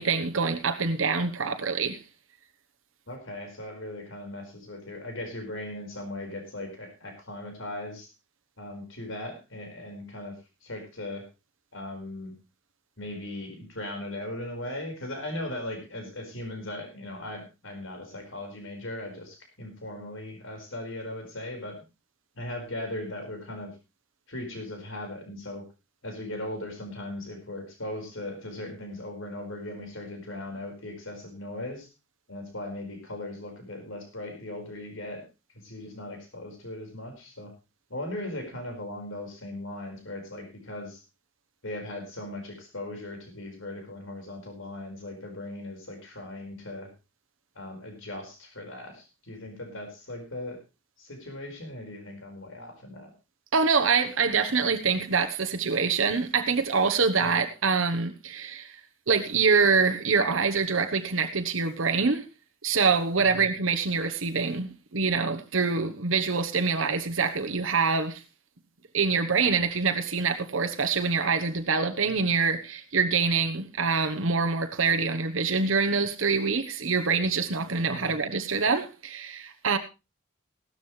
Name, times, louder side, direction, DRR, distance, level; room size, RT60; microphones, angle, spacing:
voice 1, 0.0-2.0 53.5-58.7 59.1-62.2 62.6-68.2 68.9-79.8, right 5 dB, 80° right, 1.1 m, -25 dB
voice 2, 3.1-8.1 8.6-11.2 11.7-12.3 13.0-21.8 22.3-23.7 24.3-25.6 26.0-31.9 32.3-35.2 35.5-37.5 37.9-41.0 41.6-46.9 47.5-50.6 51.0-53.1 57.2-57.4 63.3-63.5 77.8-78.1, left 1 dB, 75° left, 5.0 m, -38 dB
16.0 x 13.0 x 3.3 m
head